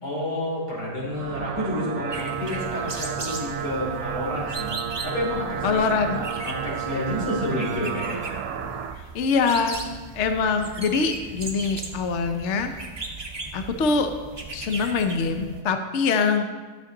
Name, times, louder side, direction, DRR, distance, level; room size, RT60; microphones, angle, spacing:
voice 1, 0.0-4.8 5.0-8.2, left 1 dB, 80° left, -5 dB, 3.6 m, -30 dB
sound 1, 1.0-9.0, right 7 dB, 70° right, 1.1 m, -32 dB
sound 2, 2.1-15.6, right 3 dB, 25° right, 0.6 m, -38 dB
voice 2, 5.6-6.2 8.9-9.9 10.1-12.7 13.5-14.1 14.5-16.4, left 4 dB, 60° left, 7 dB, 0.8 m, -24 dB
12.5 x 6.6 x 3.8 m, 1.3 s
omnidirectional pair, 1.7 m